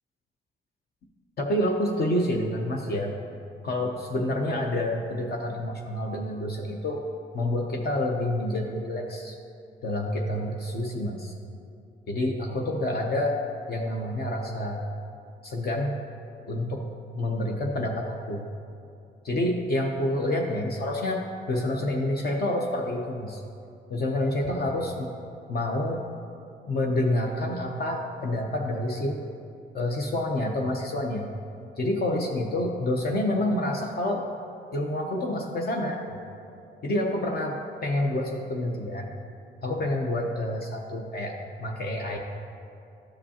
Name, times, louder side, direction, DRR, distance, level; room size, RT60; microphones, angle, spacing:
voice 1, 1.4-3.1 3.6-7.0 7.3-9.4 9.8-11.3 12.1-13.4 13.7-14.8 15.4-16.0 16.5-16.8 17.1-18.5 19.2-23.4 23.9-25.1 25.5-26.0 26.7-29.2 29.7-31.3 31.8-34.2 34.7-36.0 36.8-39.1 39.6-42.2, left 1 dB, 50° left, 0 dB, 0.8 m, -28 dB
12.5 x 5.0 x 2.8 m, 2.5 s
cardioid pair, 90°, 20 cm